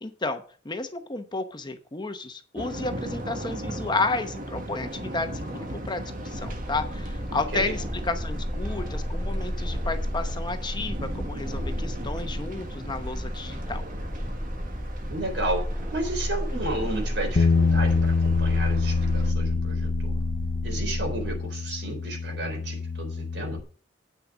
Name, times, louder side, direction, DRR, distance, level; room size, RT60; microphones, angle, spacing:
voice 1, 0.0-13.8, left 3 dB, 25° left, 8 dB, 0.9 m, -32 dB
sound 1, 2.6-19.3, right 1 dB, 50° right, 1.3 m, -38 dB
sound 2, 6.3-21.4, equal, 15° right, 2.1 m, -32 dB
voice 2, 7.3-7.7 15.1-20.1 20.6-23.6, right 2 dB, 75° right, 3 dB, 3.8 m, -33 dB
Bass guitar, 17.4-23.6, left 4 dB, 55° left, 0.8 m, -26 dB
8.6 x 6.5 x 6.1 m, 0.41 s
head